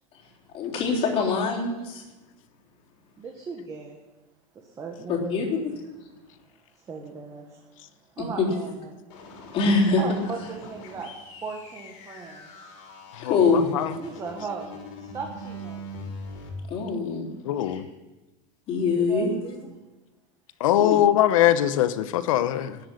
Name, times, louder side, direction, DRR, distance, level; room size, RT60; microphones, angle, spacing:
voice 1, 0.5-2.0 5.1-5.7 8.4-8.5 9.5-10.0 13.2-13.7 16.7-17.3 17.6-17.8 18.7-19.3 20.8-21.0, left 4 dB, 35° left, 3.6 m, -24 dB
voice 2, 3.2-4.0 4.8-5.4 6.9-7.6 8.2-9.0 10.0-11.1 11.4-12.5 14.0-16.0 18.9-19.7, right 5 dB, 20° right, 1.5 m, -37 dB
sound 1, 9.1-16.5, left 1 dB, 65° left, 4.6 m, -42 dB
voice 3, 13.1-13.9 17.4-17.8 20.6-22.8, left 12 dB, 90° left, 1.0 m, -22 dB
13.0 x 8.1 x 10.0 m
supercardioid pair, 160°, 17 cm